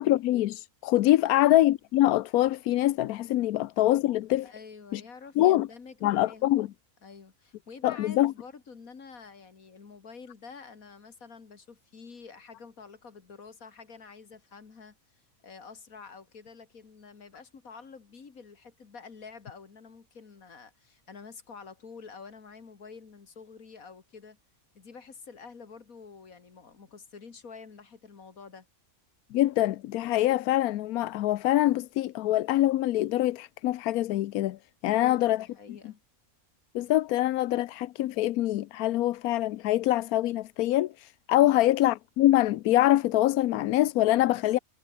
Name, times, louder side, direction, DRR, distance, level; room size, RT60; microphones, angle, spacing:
voice 1, 0.0-4.5 4.9-5.0 5.4-5.7 6.0-6.7 7.8-8.3 29.3-35.5 36.7-44.6, left 14 dB, 85° left, 1.1 m, -24 dB
voice 2, 1.2-1.5 4.4-6.7 7.0-24.4 24.7-28.7 35.0-36.0 41.4-41.7 44.2-44.6, left 5 dB, 70° left, 2.6 m, -48 dB
omnidirectional pair, 1.5 m